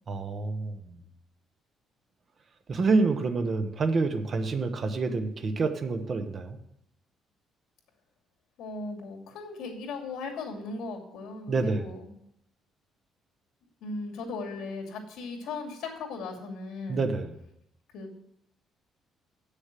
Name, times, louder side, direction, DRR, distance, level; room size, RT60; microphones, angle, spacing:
voice 1, 0.1-0.8 2.7-6.6 11.5-11.9 16.9-17.4, right 3 dB, 30° right, 7 dB, 0.9 m, -27 dB
voice 2, 8.6-12.1 13.8-17.1 17.9-18.1, left 3 dB, 75° left, 1 dB, 2.5 m, -37 dB
8.0 x 6.6 x 7.4 m, 0.77 s
cardioid pair, 180°, 0 cm